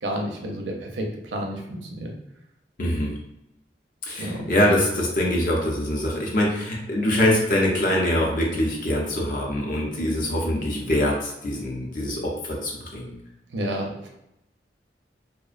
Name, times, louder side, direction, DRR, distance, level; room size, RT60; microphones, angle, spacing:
voice 1, 0.0-2.2 4.2-4.5 13.5-14.1, right 1 dB, 80° right, 1 dB, 0.5 m, -30 dB
voice 2, 2.8-3.1 4.0-13.1, left 1 dB, 45° left, -2 dB, 0.5 m, -24 dB
2.5 x 2.0 x 2.4 m, 0.86 s
head